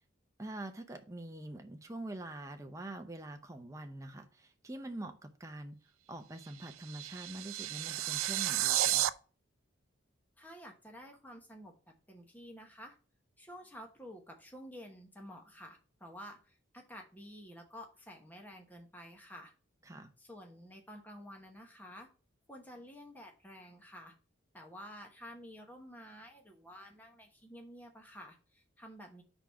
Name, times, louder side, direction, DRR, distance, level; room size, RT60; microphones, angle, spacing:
voice 1, 0.4-5.8 6.1-9.0 19.9-20.1, right 1 dB, 15° right, 0.6 m, -45 dB
sound 1, 6.4-9.1, right 14 dB, 85° right, 0.4 m, -32 dB
voice 2, 10.4-11.7 12.1-13.0 13.4-19.5 20.2-22.1 22.5-24.1 24.5-29.2, equal, 10° left, 1.0 m, -51 dB
4.8 x 3.9 x 5.7 m
head